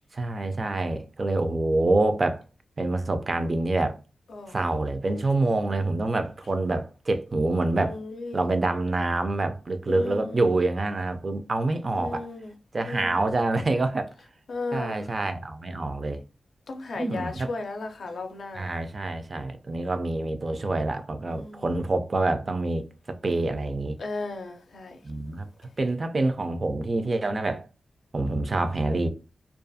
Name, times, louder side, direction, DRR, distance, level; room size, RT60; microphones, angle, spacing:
voice 1, 0.1-2.4 2.8-4.0 4.5-8.0 8.3-12.3 12.7-14.1 14.7-16.2 16.9-17.5 18.5-24.0 25.0-25.5 25.8-27.6 28.1-29.1, right 2 dB, 45° right, 0.4 m, -26 dB
voice 2, 7.9-8.4 9.9-10.4 11.9-12.5 12.8-13.2 14.5-15.0 16.7-18.7 21.3-21.6 24.0-25.0, left 3 dB, 75° left, 0.4 m, -35 dB
2.4 x 2.3 x 2.6 m
wide cardioid pair, 85°, 0 cm